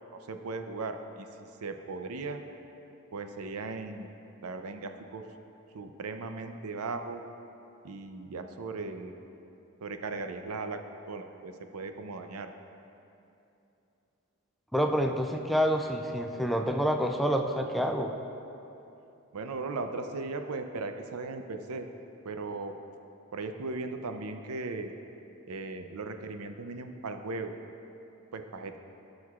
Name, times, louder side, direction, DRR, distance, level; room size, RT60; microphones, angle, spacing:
voice 1, 0.3-2.4 3.1-4.1 4.4-5.2 5.7-7.2 7.8-9.1 9.8-10.8 11.1-12.5 19.3-21.9 22.2-22.7 23.3-25.0 25.5-27.6 28.3-28.8, right 3 dB, 75° right, 6 dB, 0.6 m, -37 dB
voice 2, 14.7-18.1, equal, ahead, 3 dB, 0.3 m, -27 dB
16.5 x 6.5 x 2.4 m, 2.8 s
head